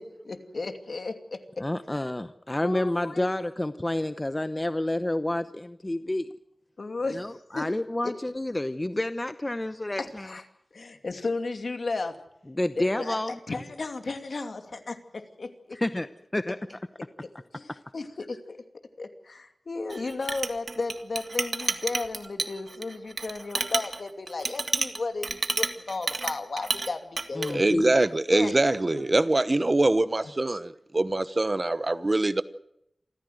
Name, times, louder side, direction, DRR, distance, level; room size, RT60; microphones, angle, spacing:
voice 1, 0.3-1.6 2.6-3.3 6.8-7.2 7.6-7.7 8.0-8.1 10.0-10.4 10.7-12.2 12.8-15.8 17.0-17.1 17.5-18.6 19.0-27.7 28.3-28.6 28.9-29.0, left 3 dB, 65° left, 2.6 m, -34 dB
voice 2, 1.6-6.3 7.1-10.3 12.5-13.4 15.7-16.1 16.3-16.8 27.3-27.9, left 1 dB, 20° left, 0.8 m, -29 dB
Chink clink, 19.9-26.9 27.2-27.5, right 3 dB, 60° right, 1.8 m, -30 dB
voice 3, 27.5-32.4, right 2 dB, 35° right, 1.0 m, -24 dB
27.5 x 14.5 x 7.9 m
wide cardioid pair, 80°, 0 cm